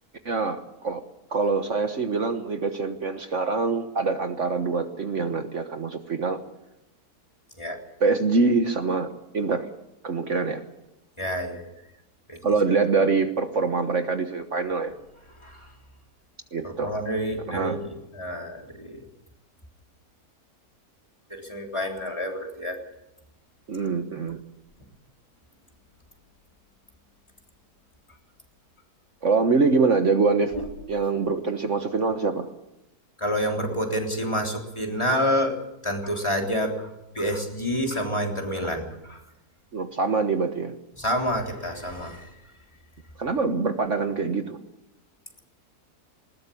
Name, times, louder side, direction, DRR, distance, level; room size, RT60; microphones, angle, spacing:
voice 1, 0.2-1.0 1.3-6.4 8.0-9.1 9.3-9.6 10.0-10.6 12.4-14.9 16.5-16.9 17.5-17.9 23.7-24.4 29.2-30.5 30.9-32.5 39.7-40.7 43.2-44.6, right 4 dB, 50° right, 7 dB, 1.5 m, -24 dB
voice 2, 11.2-11.7 12.3-12.4 15.4-15.7 16.6-19.0 21.3-22.8 23.7-23.9 30.5-30.7 33.2-39.2 41.0-42.3, equal, 20° left, 2 dB, 3.6 m, -28 dB
20.5 x 19.5 x 8.6 m, 0.89 s
omnidirectional pair, 1.6 m